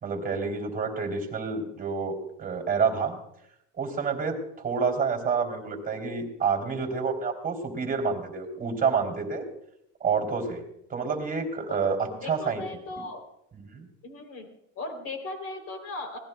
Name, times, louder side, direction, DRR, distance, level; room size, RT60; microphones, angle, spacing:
voice 1, 0.0-3.2 3.8-4.4 4.6-9.4 10.0-10.6 10.9-12.6 13.5-13.9, right 5 dB, 25° right, 1 dB, 3.2 m, -28 dB
voice 2, 12.2-13.2 14.0-14.5 14.8-16.2, left 2 dB, 45° left, 5 dB, 3.4 m, -37 dB
22.5 x 18.0 x 2.3 m, 0.79 s
supercardioid pair, 120°, 34 cm